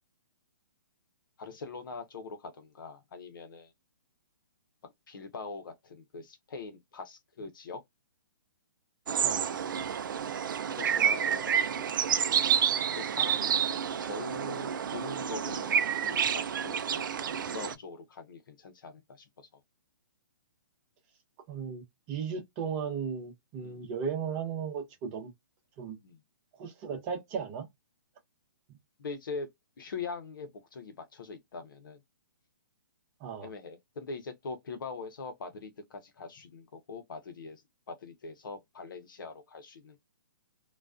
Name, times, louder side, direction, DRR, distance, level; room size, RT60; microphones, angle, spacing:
voice 1, 1.4-3.7 5.1-7.8 10.8-11.9 13.0-13.6 14.0-17.0 17.5-19.6 23.6-23.9 26.0-26.2 29.0-29.5 29.8-32.0 33.4-40.0, left 4 dB, 70° left, 0.8 m, -42 dB
sound 1, 9.1-17.7, right 8 dB, 65° right, 0.4 m, -29 dB
voice 2, 21.5-25.3 25.8-26.0 26.6-27.7 33.2-33.5, right 6 dB, 30° right, 0.8 m, -36 dB
2.3 x 2.2 x 2.4 m
hypercardioid pair, 145°, 11 cm